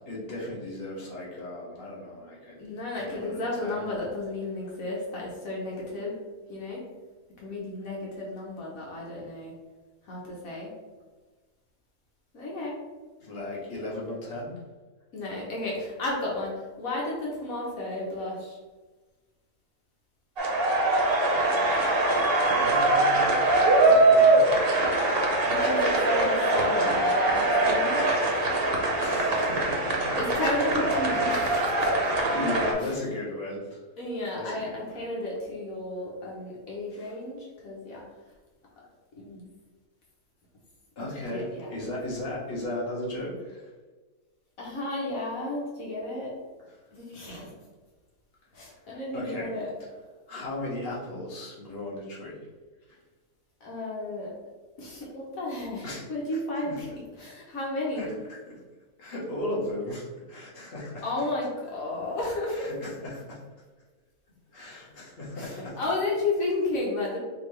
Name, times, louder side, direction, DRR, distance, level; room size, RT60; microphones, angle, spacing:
voice 1, 0.1-3.8 13.2-14.6 22.5-23.3 23.8-24.8 29.0-30.2 30.8-31.8 32.3-33.8 34.3-35.1 36.9-37.2 41.0-43.7 46.6-46.7 48.9-49.5 50.3-52.4 52.9-53.0 55.8-56.8 57.9-58.6 59.0-61.3 62.5-63.4 64.5-65.8, left 1 dB, 45° left, -5 dB, 1.4 m, -36 dB
voice 2, 2.6-6.2 6.5-6.8 7.4-9.5 10.1-10.7 12.3-12.7 15.1-18.6 25.4-28.0 30.2-31.9 32.8-32.9 34.0-38.0 39.2-39.5 41.3-41.7 44.6-46.3 46.9-47.5 48.5-49.7 53.6-54.3 54.8-58.1 61.0-62.7 65.4-67.2, left 2 dB, 75° left, -3 dB, 1.4 m, -33 dB
sound 1, 20.4-32.7, right 2 dB, 50° right, 0.9 m, -23 dB
5.0 x 2.9 x 3.1 m, 1.3 s
omnidirectional pair, 1.5 m